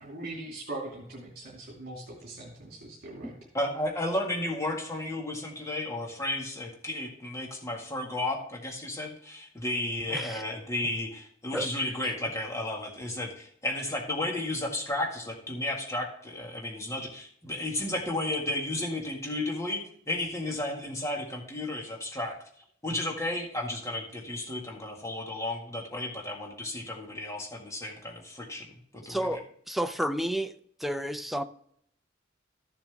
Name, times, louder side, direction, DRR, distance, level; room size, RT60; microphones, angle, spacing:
voice 1, 0.0-3.3, right 2 dB, 50° right, -3 dB, 2.5 m, -41 dB
voice 2, 3.5-22.4 22.8-29.3, left 1 dB, 15° left, 0 dB, 1.9 m, -33 dB
voice 3, 10.1-10.4 11.5-11.7 29.1-30.5 30.8-31.4, equal, ahead, 8 dB, 0.5 m, -31 dB
14.0 x 7.2 x 3.5 m, 0.67 s
head